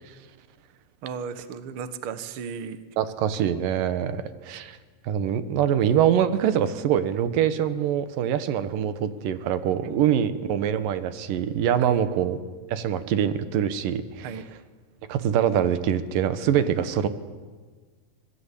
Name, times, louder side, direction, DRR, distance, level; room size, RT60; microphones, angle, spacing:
voice 1, 1.0-2.8 9.8-10.0 11.8-12.0 14.2-14.4 16.6-16.8, right 6 dB, 55° right, 11 dB, 1.6 m, -35 dB
voice 2, 3.0-4.8 5.0-12.4 12.7-14.4 15.1-17.1, right 9 dB, 80° right, 12 dB, 2.9 m, -24 dB
26.0 x 20.0 x 8.4 m, 1.5 s
omnidirectional pair, 3.9 m